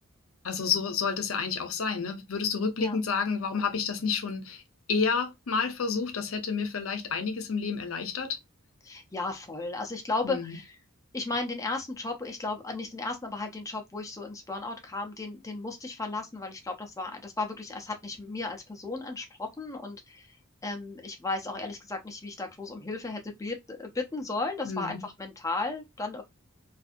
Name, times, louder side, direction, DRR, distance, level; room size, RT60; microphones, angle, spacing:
voice 1, 0.4-4.6 4.9-8.4 10.2-10.5 24.6-25.1, left 5 dB, 70° left, 0.6 m, -30 dB
voice 2, 8.8-10.7 11.1-20.4 20.6-26.2, left 3 dB, 15° left, 0.5 m, -35 dB
2.6 x 2.4 x 2.5 m
head